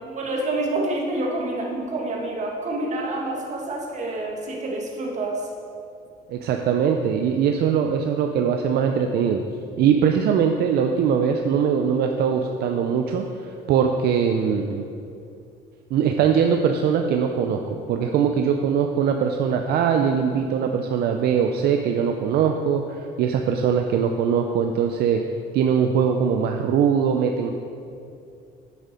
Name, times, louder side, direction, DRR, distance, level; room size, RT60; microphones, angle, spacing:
voice 1, 0.0-5.4, right 2 dB, 45° right, 0 dB, 1.8 m, -27 dB
voice 2, 6.3-9.4 9.8-14.8 15.9-25.2 25.5-27.5, right 7 dB, 70° right, 4 dB, 0.6 m, -21 dB
8.2 x 7.7 x 5.2 m, 2.5 s
cardioid pair, 110°, 17 cm